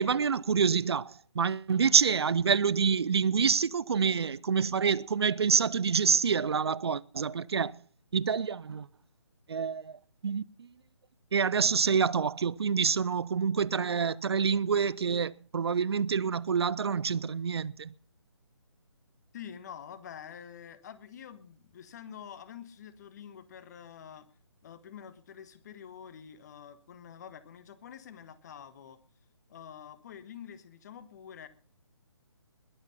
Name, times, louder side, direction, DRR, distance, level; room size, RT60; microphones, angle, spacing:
voice 1, 0.0-7.8 8.1-8.9 9.5-10.7 11.3-17.9, right 6 dB, 60° right, 0.6 m, -27 dB
voice 2, 19.3-24.3 24.6-29.0 29.5-31.5, left 8 dB, 35° left, 1.5 m, -47 dB
21.0 x 8.3 x 5.6 m
figure-of-eight pair, 145°, 15 cm